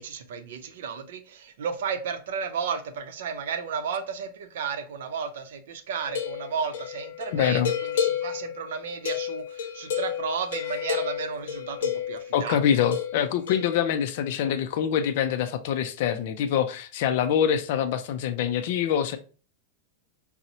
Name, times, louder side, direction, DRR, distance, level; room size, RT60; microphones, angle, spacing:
voice 1, 0.0-12.8, right 6 dB, 70° right, 0.5 m, -33 dB
sound 1, 6.1-12.3 12.9-13.8, left 9 dB, 90° left, 0.6 m, -31 dB
voice 2, 7.3-7.7 12.3-19.2, left 9 dB, 50° left, 0.3 m, -25 dB
4.1 x 2.0 x 2.6 m
supercardioid pair, 170°, 0 cm